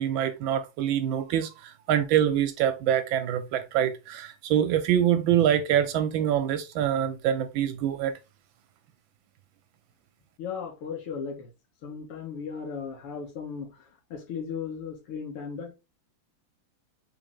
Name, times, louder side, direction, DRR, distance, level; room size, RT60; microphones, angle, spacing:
voice 1, 0.0-8.1, right 10 dB, 75° right, 1.2 m, -25 dB
voice 2, 10.4-11.5 11.8-13.9 14.1-15.7, left 6 dB, 90° left, 2.3 m, -36 dB
3.9 x 3.8 x 3.5 m
omnidirectional pair, 2.4 m